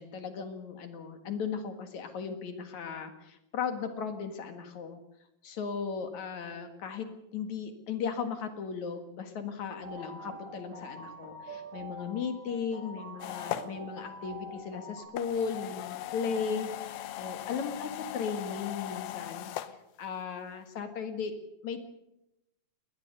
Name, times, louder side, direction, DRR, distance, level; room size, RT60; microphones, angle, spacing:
voice 1, 0.0-5.0 5.4-21.3 21.6-21.8, left 6 dB, 55° left, 8 dB, 2.7 m, -36 dB
sound 1, 9.8-15.0, right 1 dB, 60° right, 9.8 m, -45 dB
sound 2, 13.2-13.7 15.1-19.7, left 13 dB, 75° left, 2.7 m, -38 dB
20.5 x 20.0 x 6.8 m, 0.86 s
omnidirectional pair, 4.4 m